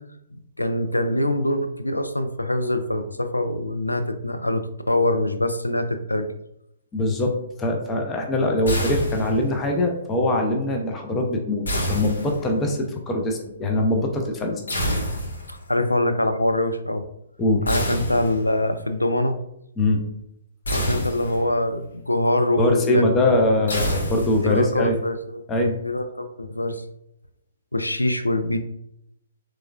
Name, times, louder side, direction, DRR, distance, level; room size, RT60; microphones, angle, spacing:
voice 1, 0.6-6.3 15.5-17.0 17.6-19.4 20.7-23.0 24.4-25.4 25.8-26.8 27.7-28.6, left 1 dB, 85° left, 8 dB, 0.4 m, -24 dB
voice 2, 6.9-7.3 7.6-14.6 17.4-17.7 19.8-20.0 22.6-24.9 25.5-25.8, left 1 dB, 15° left, 1 dB, 0.5 m, -22 dB
sound 1, 8.6-9.6 11.6-12.7 14.7-15.6 17.6-18.7 20.6-21.6 23.7-24.7, equal, 70° left, 1.0 m, -27 dB
3.7 x 3.1 x 2.4 m, 0.80 s
figure-of-eight pair, 125°, 0 cm